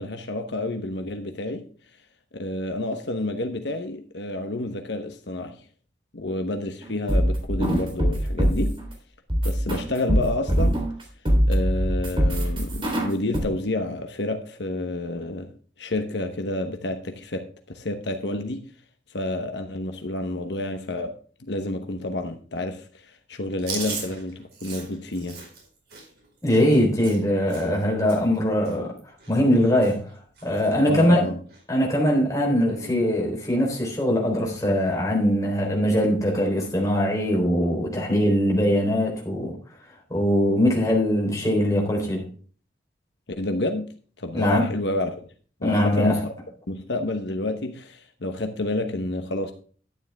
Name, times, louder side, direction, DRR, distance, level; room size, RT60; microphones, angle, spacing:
voice 1, 0.0-1.6 2.3-5.7 6.1-8.8 9.4-10.8 11.5-15.5 15.8-18.6 19.1-21.1 21.4-25.4 30.9-31.4 43.4-43.9 44.2-45.3 45.6-46.3 46.7-49.5, left 2 dB, 75° left, 1.1 m, -29 dB
sound 1, 6.8-8.8 9.3-11.0 11.3-13.4, equal, 30° right, 3.5 m, -22 dB
Chewing mastication, 23.6-27.8 28.1-28.4 28.6-29.6 29.8-30.1 30.4-31.1 31.5-31.6 32.7-33.1, right 4 dB, 60° right, 4.5 m, -38 dB
voice 2, 26.4-28.9 29.3-30.0 30.4-31.3 31.7-39.6 40.1-42.2 44.3-44.7 45.6-46.1, equal, 20° left, 3.8 m, -21 dB
12.0 x 9.8 x 3.5 m
head